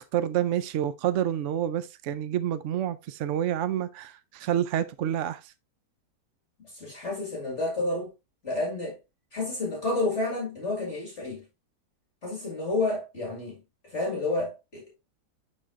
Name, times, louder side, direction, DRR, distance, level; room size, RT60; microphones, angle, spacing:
voice 1, 0.0-5.5, right 11 dB, 75° right, 0.6 m, -28 dB
voice 2, 6.6-8.1 8.4-9.0 9.3-11.4 12.2-13.6 13.8-14.9, left 2 dB, 45° left, 2.2 m, -30 dB
11.0 x 3.9 x 2.5 m
omnidirectional pair, 1.8 m